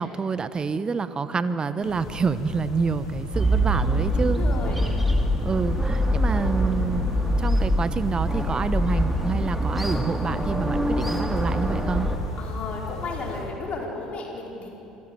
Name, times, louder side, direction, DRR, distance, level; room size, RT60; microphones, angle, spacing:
voice 1, 0.0-4.4 5.4-12.1, right 5 dB, 30° right, 13 dB, 1.1 m, -27 dB
sound 1, 1.8-13.4, left 3 dB, 80° left, 4.0 m, -37 dB
sound 2, 3.3-12.2, equal, 5° right, 2.4 m, -24 dB
voice 2, 4.0-4.9 12.4-14.7, left 3 dB, 45° left, -1 dB, 4.7 m, -34 dB
26.0 x 15.5 x 7.6 m, 3.0 s
figure-of-eight pair, 60°, 3 cm